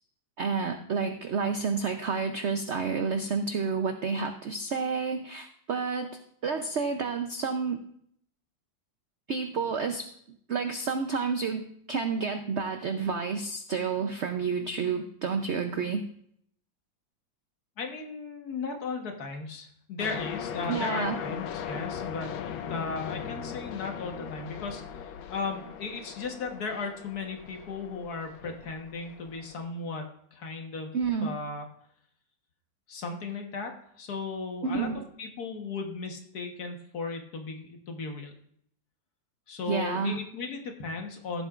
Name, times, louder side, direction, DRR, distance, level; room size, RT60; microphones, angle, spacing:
voice 1, 0.4-6.1 6.4-7.8 9.3-10.1 10.5-16.0 20.7-21.2 28.5-28.6 30.9-31.4 34.6-35.0 39.7-40.2, right 5 dB, 80° right, 6 dB, 0.6 m, -30 dB
voice 2, 17.8-22.4 22.7-30.9 31.2-31.7 32.9-34.9 35.2-38.3 39.5-41.5, left 4 dB, 55° left, 3 dB, 1.7 m, -36 dB
sound 1, 20.0-29.6, left 8 dB, 85° left, 1.5 m, -39 dB
15.5 x 8.2 x 2.4 m, 0.66 s
omnidirectional pair, 2.1 m